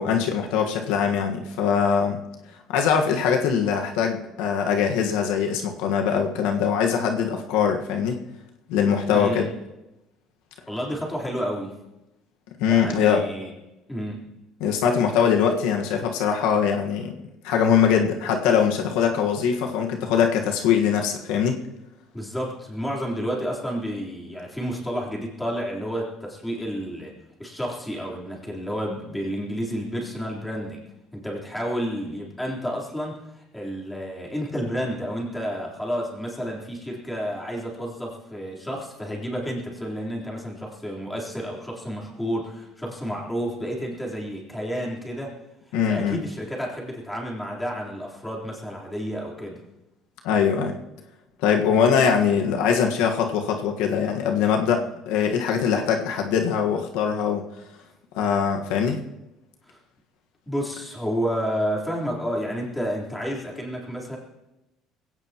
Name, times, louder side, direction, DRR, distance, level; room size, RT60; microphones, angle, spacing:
voice 1, 0.0-2.2 2.7-8.2 8.7-9.5 12.6-13.2 14.6-17.1 17.4-21.6 45.7-46.2 50.2-50.8 51.4-57.4 58.1-59.0, left 7 dB, 90° left, 3 dB, 1.5 m, -22 dB
voice 2, 9.1-9.5 10.7-11.7 12.7-13.5 13.9-14.2 22.1-27.1 27.4-30.8 31.1-45.3 45.9-49.6 59.7-59.8 60.5-64.2, equal, 5° left, -4 dB, 3.9 m, -30 dB
21.0 x 17.0 x 3.0 m, 0.96 s
cardioid pair, 140°, 0 cm